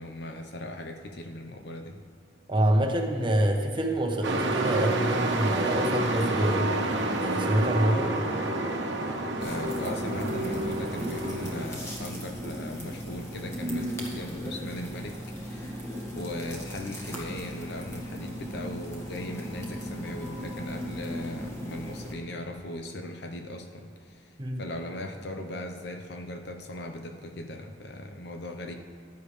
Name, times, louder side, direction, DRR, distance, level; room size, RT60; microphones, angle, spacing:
voice 1, 0.0-2.0 9.3-15.8 16.2-24.3 24.6-28.7, left 1 dB, 60° left, 4 dB, 0.9 m, -38 dB
voice 2, 2.5-6.7 7.2-8.2 24.4-24.6, right 1 dB, 25° right, 2 dB, 1.1 m, -26 dB
Truck, 4.2-11.7, right 2 dB, 65° right, 1.2 m, -29 dB
sound 1, 9.4-22.1, equal, 15° left, 1.7 m, -37 dB
15.0 x 10.5 x 3.3 m, 2.3 s
head